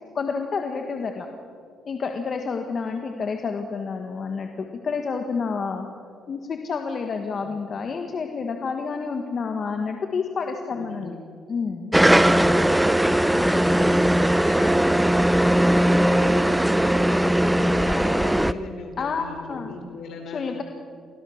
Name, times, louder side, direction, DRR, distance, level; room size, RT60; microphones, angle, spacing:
voice 1, 0.1-1.3 1.8-5.9 6.3-11.2 11.5-11.9 19.0-19.7 20.3-20.6, left 5 dB, 50° left, 4 dB, 1.5 m, -29 dB
voice 2, 10.7-11.1 13.4-14.1 14.4-16.5 16.8-20.5, left 3 dB, 75° left, 3 dB, 4.1 m, -38 dB
sound 1, 11.9-18.5, right 1 dB, 5° right, 0.6 m, -19 dB
24.0 x 16.5 x 6.5 m, 2.3 s
cardioid pair, 90°, 0 cm